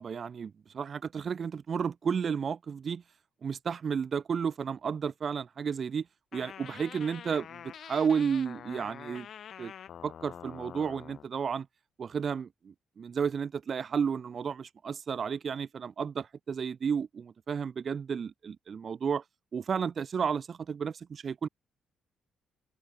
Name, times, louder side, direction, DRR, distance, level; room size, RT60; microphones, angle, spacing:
voice 1, 0.0-3.0 3.4-6.1 6.3-9.3 9.6-9.7 10.0-11.7 12.0-19.2 19.5-21.5, right 6 dB, 45° right, 1.8 m, -32 dB
sound 1, 6.3-11.3, left 9 dB, 60° left, 4.9 m, -46 dB
cardioid pair, 90°, 0 cm